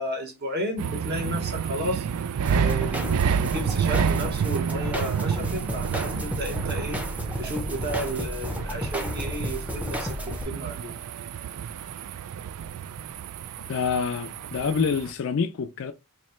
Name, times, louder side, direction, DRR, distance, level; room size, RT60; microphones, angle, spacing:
voice 1, 0.0-7.1 7.4-11.0, equal, 45° right, 1.1 m, -33 dB
sound 1, 0.8-15.1, right 7 dB, 85° right, 0.3 m, -30 dB
sound 2, 2.4-10.4, equal, 5° right, 0.6 m, -33 dB
voice 2, 13.7-15.9, left 6 dB, 60° left, 0.3 m, -27 dB
3.1 x 2.8 x 4.2 m
head